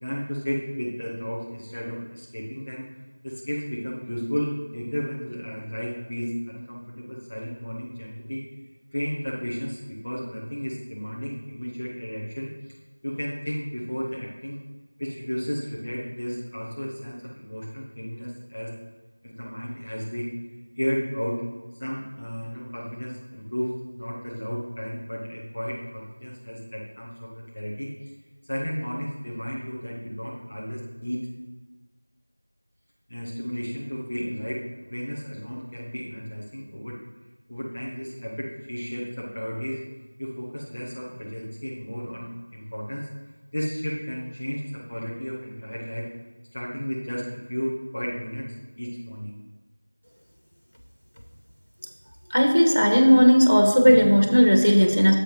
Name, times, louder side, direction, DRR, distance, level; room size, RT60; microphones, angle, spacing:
voice 1, 0.0-2.9 3.2-8.4 8.9-12.7 13.0-14.6 15.0-18.7 19.2-20.3 20.8-21.4 21.7-28.1 28.4-31.2 33.1-37.0 37.5-39.8 40.2-43.1 43.5-46.1 46.5-49.4, equal, 15° left, -4 dB, 0.5 m, -33 dB
voice 2, 52.3-55.1, equal, 70° left, 2 dB, 1.8 m, -16 dB
9.9 x 7.3 x 3.0 m, 1.3 s
figure-of-eight pair, 180°, 0 cm